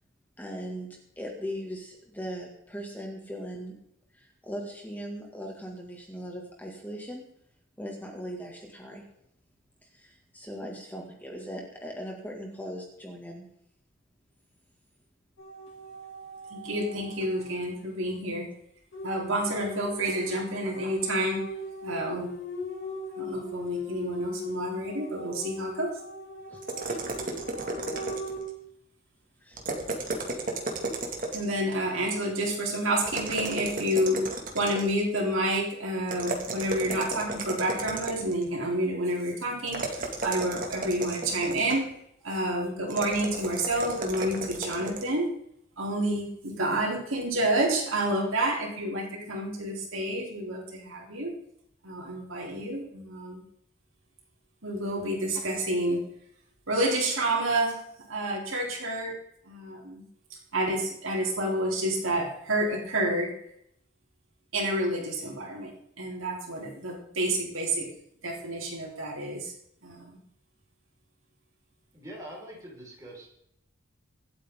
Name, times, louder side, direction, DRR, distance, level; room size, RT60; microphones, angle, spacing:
voice 1, 0.4-3.7 4.1-7.2 7.8-9.0 9.8-13.4 26.5-26.6 26.9-27.0 29.4-29.6, equal, 10° left, 0 dB, 2.3 m, -39 dB
sound 1, 15.4-17.8 18.9-28.4, equal, 80° left, 4.3 m, -39 dB
voice 2, 16.5-18.5 19.0-21.4 21.8-22.3 23.2-26.0 31.3-34.2 34.5-41.9 42.2-45.3 45.8-51.3 51.8-53.4 54.6-56.0 56.7-57.8 58.1-59.1 59.5-60.0 60.5-63.3 64.5-67.9 68.2-69.5 69.8-70.2, right 1 dB, 80° right, -1 dB, 3.8 m, -29 dB
sound 2, 26.6-28.5 29.5-31.6 33.1-35.0 36.1-38.5 39.7-41.9 42.9-45.1, right 2 dB, 40° right, 2.3 m, -34 dB
voice 3, 71.9-73.3, right 1 dB, 15° right, -4 dB, 5.3 m, -43 dB
24.5 x 8.5 x 3.9 m, 0.73 s
head